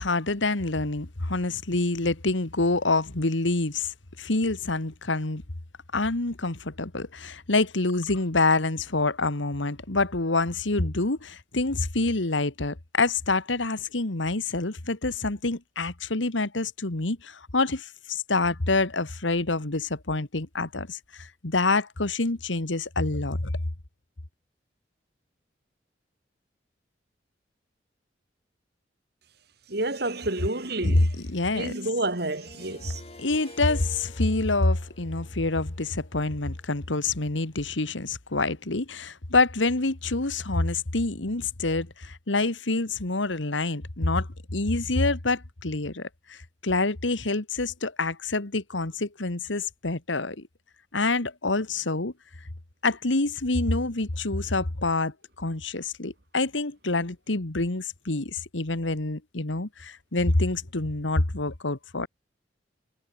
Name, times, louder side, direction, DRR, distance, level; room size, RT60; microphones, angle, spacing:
voice 1, 0.0-5.4 5.9-23.5 30.8-31.0 31.3-31.7 33.2-50.5 50.9-52.1 52.8-62.1, left 3 dB, 85° left, 1.9 m, -27 dB
voice 2, 29.7-31.2 31.5-33.0, right 2 dB, 60° right, 3.2 m, -29 dB
Harp, 32.3-37.2, left 2 dB, 35° left, 4.7 m, -51 dB
head